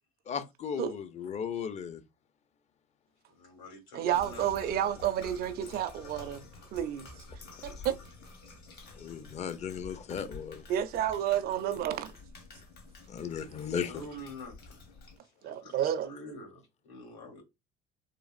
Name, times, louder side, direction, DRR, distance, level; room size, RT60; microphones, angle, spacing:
voice 1, 0.3-2.0 9.0-10.6 13.1-13.9, left 7 dB, 35° left, 0.5 m, -36 dB
voice 2, 3.3-4.7 7.5-7.6 13.3-13.6 13.9-14.8 15.2-15.8 16.0-17.4, left 1 dB, 85° left, 1.8 m, -47 dB
voice 3, 3.9-6.5 6.7-7.1 7.6-8.0 10.7-12.1 15.4-16.1, right 10 dB, 55° right, 0.5 m, -30 dB
sound 1, 4.1-15.2, left 3 dB, 55° left, 1.2 m, -50 dB
3.2 x 2.4 x 2.4 m
supercardioid pair, 80°, 19 cm